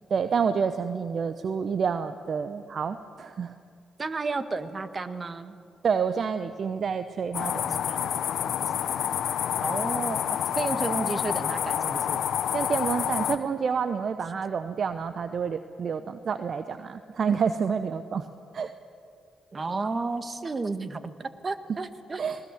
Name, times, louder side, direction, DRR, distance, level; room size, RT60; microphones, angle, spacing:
voice 1, 0.1-3.5 5.8-8.1 12.5-18.3 18.5-18.7 22.2-22.4, right 6 dB, 55° right, 11 dB, 0.8 m, -28 dB
voice 2, 4.0-5.6 9.6-10.2 10.5-12.2 19.5-22.2, right 3 dB, 40° right, 11 dB, 1.6 m, -32 dB
sound 1, 7.3-13.4, left 9 dB, 70° left, 0.9 m, -28 dB
20.0 x 20.0 x 8.3 m, 2.3 s
hypercardioid pair, 45°, 0 cm